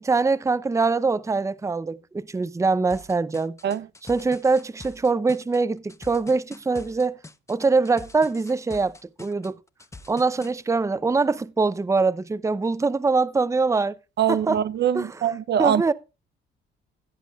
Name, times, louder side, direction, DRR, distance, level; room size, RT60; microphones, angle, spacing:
voice 1, 0.0-3.6 4.1-7.2 7.5-8.9 9.2-9.6 10.1-13.9 14.3-14.6 14.9-15.1 15.6-15.9, right 4 dB, 15° right, 0.6 m, -23 dB
sound 1, 2.9-10.5, left 2 dB, 15° left, 0.9 m, -44 dB
voice 2, 14.2-15.9, right 9 dB, 60° right, 0.7 m, -23 dB
16.5 x 8.3 x 2.4 m
cardioid pair, 90°, 20 cm